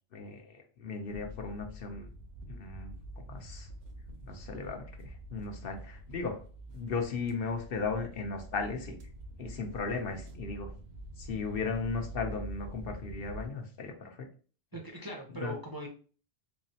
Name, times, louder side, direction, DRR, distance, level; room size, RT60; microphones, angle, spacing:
voice 1, 0.1-2.1 2.5-2.9 3.3-3.7 4.3-6.4 6.7-9.0 9.4-10.7 11.2-14.3 15.3-15.5, left 4 dB, 65° left, 4 dB, 0.9 m, -36 dB
sound 1, 1.1-13.5, right 1 dB, 75° right, 1.0 m, -46 dB
voice 2, 14.7-15.9, right 1 dB, 30° right, -1 dB, 0.5 m, -40 dB
3.6 x 3.0 x 2.8 m, 0.40 s
omnidirectional pair, 1.1 m